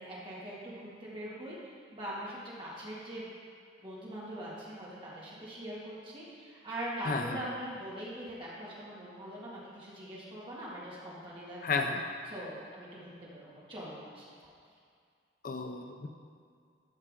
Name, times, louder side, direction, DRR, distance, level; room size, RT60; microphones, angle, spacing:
voice 1, 0.0-3.3 3.8-11.6 12.3-14.5, right 1 dB, 30° right, -8 dB, 2.2 m, -42 dB
voice 2, 7.0-7.4 11.6-12.0 15.4-16.1, left 4 dB, 50° left, 4 dB, 0.5 m, -32 dB
13.5 x 5.5 x 3.8 m, 2.2 s
head